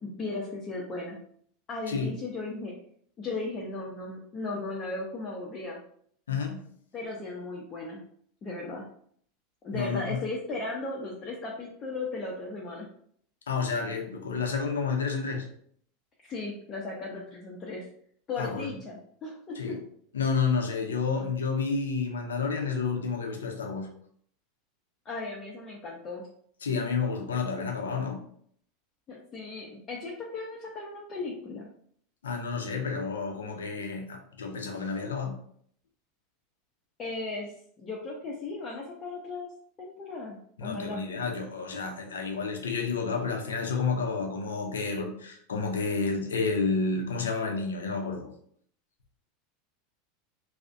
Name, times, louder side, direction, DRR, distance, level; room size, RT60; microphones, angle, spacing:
voice 1, 0.0-1.2 1.7-2.7 3.2-5.8 6.9-8.0 8.4-8.9 9.6-12.9 16.2-17.9 18.3-19.8 25.0-26.2 29.1-31.7 37.0-37.5 37.8-39.5 39.8-41.1, left 3 dB, 35° left, -4 dB, 0.5 m, -36 dB
voice 2, 6.3-6.6 9.7-10.2 13.5-15.5 18.4-18.8 19.6-19.8 20.1-23.9 26.6-28.2 32.2-35.4 40.6-48.3, left 4 dB, 85° left, 2 dB, 0.5 m, -30 dB
2.4 x 2.0 x 2.5 m, 0.63 s
hypercardioid pair, 95°, 0 cm